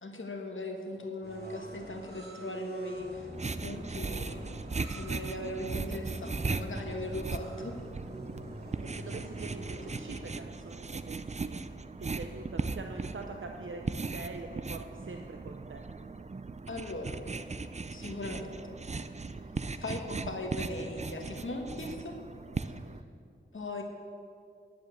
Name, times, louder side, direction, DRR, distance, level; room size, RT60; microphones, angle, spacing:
voice 1, 0.0-4.6 4.9-7.8 16.7-17.2 17.9-18.8 19.8-22.2 22.6-22.8 23.5-23.8, left 2 dB, 80° left, 3 dB, 1.5 m, -39 dB
sound 1, 1.2-10.2, equal, 55° right, 2.5 m, -44 dB
Writing on cardboard with a pencil, 3.3-23.0, right 4 dB, 35° right, 0.4 m, -38 dB
voice 2, 8.7-11.6 12.0-15.8 22.7-23.0, right 3 dB, 80° right, 3 dB, 0.6 m, -44 dB
9.8 x 7.6 x 7.9 m, 2.4 s
wide cardioid pair, 70°, 20 cm